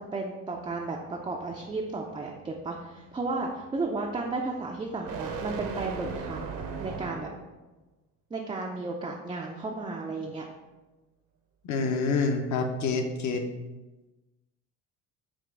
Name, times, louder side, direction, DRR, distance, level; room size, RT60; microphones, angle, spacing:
voice 1, 0.0-7.3 8.3-10.5, right 3 dB, 15° right, -1 dB, 0.4 m, -34 dB
sound 1, 0.5-7.5, right 5 dB, 50° right, 0.7 m, -39 dB
voice 2, 11.6-13.4, left 4 dB, 45° left, 5 dB, 0.7 m, -27 dB
5.9 x 2.3 x 3.4 m, 1.1 s
supercardioid pair, 70°, 42 cm